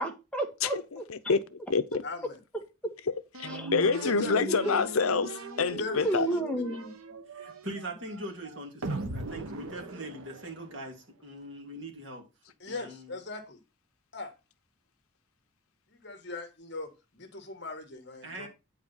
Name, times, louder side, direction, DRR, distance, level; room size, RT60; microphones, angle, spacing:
voice 1, 0.0-1.4 3.5-3.7 4.7-4.8 6.0-7.0, right 1 dB, 5° left, 1.7 m, -32 dB
voice 2, 0.6-1.4 1.7-2.0 3.1-6.3, left 5 dB, 85° left, 0.7 m, -27 dB
voice 3, 2.0-2.4 4.0-4.7 5.8-6.4 12.6-13.6 14.1-14.3 15.9-18.5, left 2 dB, 50° left, 1.7 m, -39 dB
sound 1, 3.3-10.8, right 2 dB, 90° right, 1.1 m, -39 dB
voice 4, 7.3-12.2 12.7-13.1 18.2-18.5, right 1 dB, 55° right, 2.9 m, -41 dB
9.0 x 5.0 x 5.5 m
head